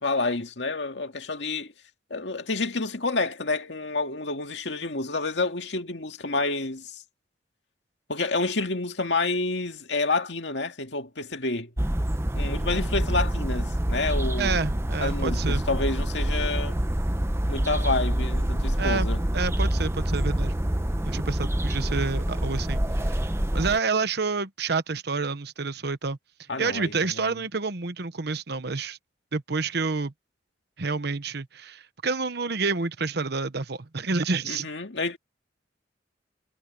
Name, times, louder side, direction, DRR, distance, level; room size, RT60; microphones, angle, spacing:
voice 1, 0.0-1.7 2.1-7.0 8.1-11.7 12.4-14.6 15.0-16.8 17.5-19.2 26.5-27.3 34.5-35.2, left 3 dB, 80° left, 2.1 m, -29 dB
sound 1, 11.8-23.8, right 1 dB, 15° right, 0.9 m, -26 dB
voice 2, 14.4-15.6 18.8-19.1 19.3-20.5 21.0-23.1 23.5-26.2 26.6-29.0 29.3-30.1 30.8-34.7, right 4 dB, 65° right, 1.1 m, -28 dB
head